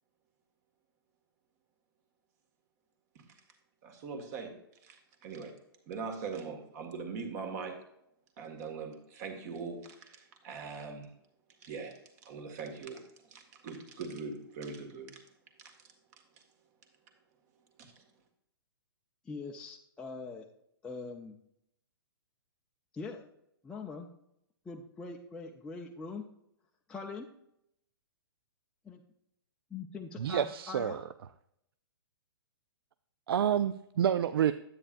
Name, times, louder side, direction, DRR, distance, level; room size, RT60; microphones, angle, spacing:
voice 1, 3.8-4.6 4.8-5.5 5.9-7.8 8.4-11.1 11.6-15.2 15.6-15.8 17.8-18.0, right 5 dB, 45° right, 4 dB, 1.9 m, -42 dB
voice 2, 19.2-20.4 20.8-21.4 22.9-23.2 23.6-24.1 24.6-26.2 26.9-27.3 28.8-29.0 29.7-31.0, left 4 dB, 5° left, -1 dB, 0.5 m, -42 dB
voice 3, 30.2-31.0 33.3-34.5, right 9 dB, 70° right, 12 dB, 0.4 m, -28 dB
9.9 x 8.7 x 2.5 m, 0.76 s
hypercardioid pair, 140°, 13 cm